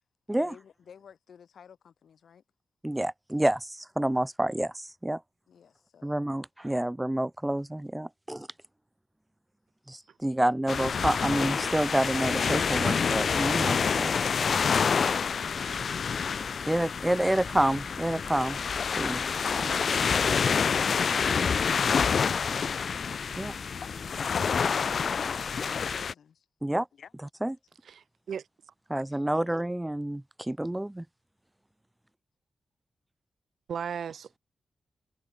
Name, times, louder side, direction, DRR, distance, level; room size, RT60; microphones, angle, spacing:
voice 1, 0.3-2.4 5.5-6.2 23.7-26.5 26.9-27.1 29.1-29.2, left 7 dB, 80° left, 6.0 m, -52 dB
voice 2, 2.8-5.2 6.0-8.5 9.9-14.1 16.7-18.6 19.0-19.2 19.6-20.2 23.4-23.5 26.6-26.9 27.4-27.5 28.9-31.0, right 1 dB, 10° right, 1.3 m, -28 dB
sound 1, 10.7-26.1, left 6 dB, 60° left, 1.4 m, -27 dB
voice 3, 27.9-28.4 28.9-29.0 33.7-34.4, right 7 dB, 80° right, 2.6 m, -37 dB
wide cardioid pair, 145°, 0 cm